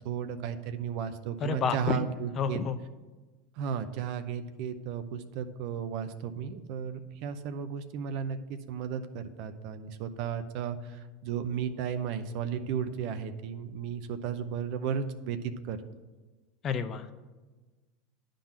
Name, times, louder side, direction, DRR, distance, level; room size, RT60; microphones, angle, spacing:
voice 1, 0.0-2.6 3.6-15.8, right 7 dB, 60° right, 10 dB, 0.7 m, -34 dB
voice 2, 1.4-2.0 2.4-2.8 16.6-17.1, left 6 dB, 40° left, 9 dB, 0.7 m, -29 dB
10.0 x 3.9 x 7.4 m, 1.2 s
hypercardioid pair, 105°, 0 cm